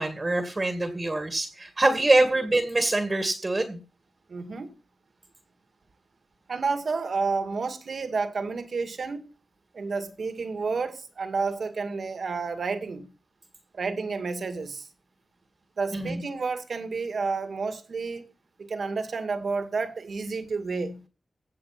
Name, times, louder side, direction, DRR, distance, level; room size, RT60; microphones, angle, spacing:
voice 1, 0.0-3.8 15.9-16.2, right 2 dB, 30° right, 2.1 m, -24 dB
voice 2, 4.3-4.7 6.5-9.2 9.7-13.1 13.7-14.9 15.8-18.3 18.6-21.0, right 4 dB, 65° right, 2.1 m, -30 dB
16.5 x 7.2 x 5.9 m
wide cardioid pair, 90°, 0 cm